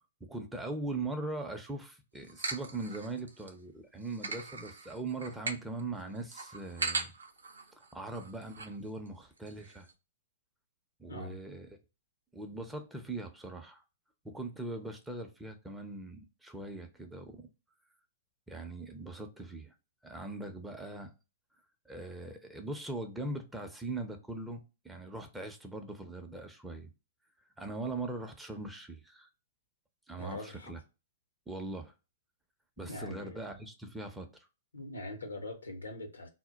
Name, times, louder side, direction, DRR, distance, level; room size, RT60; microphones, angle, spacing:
voice 1, 0.2-7.1 7.7-9.9 11.0-11.7 12.3-13.8 14.2-17.5 18.5-19.7 20.0-21.1 21.9-26.9 27.6-29.3 30.1-30.8 31.5-31.9 32.8-34.3, right 2 dB, 5° right, 0.5 m, -40 dB
sound 1, 2.2-3.5 4.0-8.8 9.1-9.2 9.4-9.9, right 4 dB, 85° right, 0.5 m, -40 dB
voice 2, 11.1-11.4 30.2-30.7 32.8-33.4 34.7-36.3, left 2 dB, 90° left, 0.7 m, -42 dB
2.2 x 2.1 x 3.7 m
hypercardioid pair, 120°, 0 cm